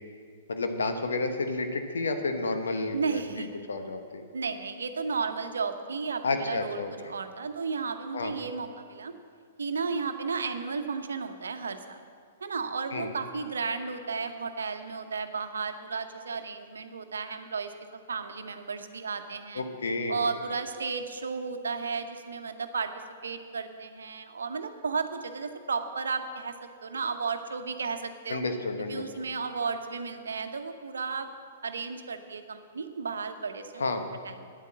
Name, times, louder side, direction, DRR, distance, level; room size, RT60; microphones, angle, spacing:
voice 1, 0.5-4.2 6.2-7.1 8.1-8.3 12.9-13.1 19.5-20.2 28.3-29.3 33.8-34.1, left 3 dB, 80° left, 6 dB, 1.2 m, -31 dB
voice 2, 2.9-3.6 4.3-9.1 9.6-12.0 12.4-17.7 18.1-19.6 20.1-22.9 23.2-26.5 26.8-28.4 28.9-31.3 31.6-33.9 34.2-34.5, right 5 dB, 80° right, 8 dB, 0.9 m, -33 dB
9.9 x 8.3 x 7.5 m, 2.1 s
hypercardioid pair, 115°, 0 cm